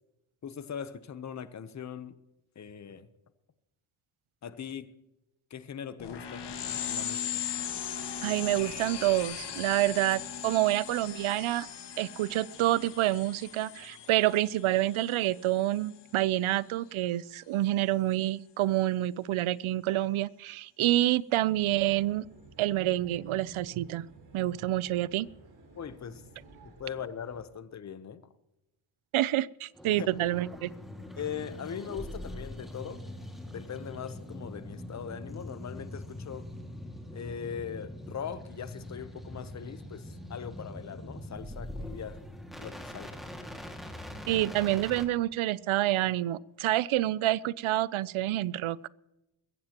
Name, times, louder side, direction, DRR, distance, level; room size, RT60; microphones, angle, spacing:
voice 1, 0.4-2.2 2.6-3.1 4.4-5.0 5.5-6.5 6.9-7.4 25.8-26.3 26.6-28.3 29.9-30.2 31.2-33.0 33.5-36.5 37.1-42.2 42.6-43.2, left 8 dB, 35° left, 0.8 m, -40 dB
sound 1, 6.0-16.1, left 8 dB, 60° left, 1.8 m, -39 dB
voice 2, 8.2-11.7 12.0-22.2 22.6-24.1 24.3-25.3 29.1-30.7 44.3-48.8, right 15 dB, 90° right, 0.6 m, -28 dB
sound 2, 21.5-27.4, right 3 dB, 50° right, 3.9 m, -55 dB
sound 3, 29.7-45.1, left 1 dB, ahead, 2.0 m, -43 dB
21.5 x 15.5 x 2.9 m
wide cardioid pair, 180°, 47 cm